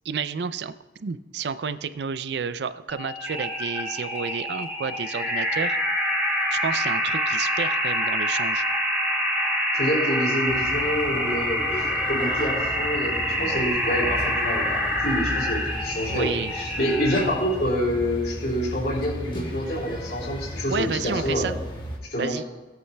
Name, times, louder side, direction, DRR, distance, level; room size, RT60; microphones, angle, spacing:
voice 1, 0.0-0.7 1.0-5.8 6.5-8.6 16.1-16.5 20.7-21.5 22.2-22.4, right 6 dB, 75° right, 13 dB, 0.4 m, -30 dB
sound 1, 2.9-17.5, equal, 10° right, 2.9 m, -26 dB
voice 2, 9.7-21.5 22.1-22.3, equal, 65° left, -4 dB, 3.4 m, -27 dB
sound 2, 10.5-22.0, equal, 30° left, 1.4 m, -35 dB
18.0 x 8.2 x 2.3 m, 1.2 s
head